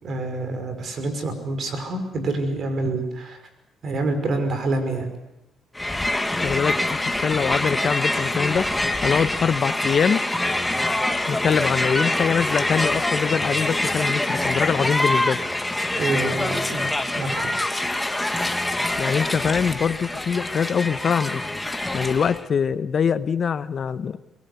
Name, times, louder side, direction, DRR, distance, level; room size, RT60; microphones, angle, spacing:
voice 1, 0.0-3.4 3.8-5.1 16.0-16.9 17.1-17.5, right 2 dB, 55° right, 7 dB, 5.6 m, -27 dB
Crowd, 5.7-22.4, left 1 dB, 10° left, 1.8 m, -25 dB
voice 2, 6.4-8.7 9.0-10.2 11.3-15.4 19.0-21.4 21.7-24.2, left 7 dB, 50° left, 13 dB, 1.0 m, -23 dB
23.5 x 21.5 x 8.3 m, 0.93 s
cardioid pair, 90°, 0 cm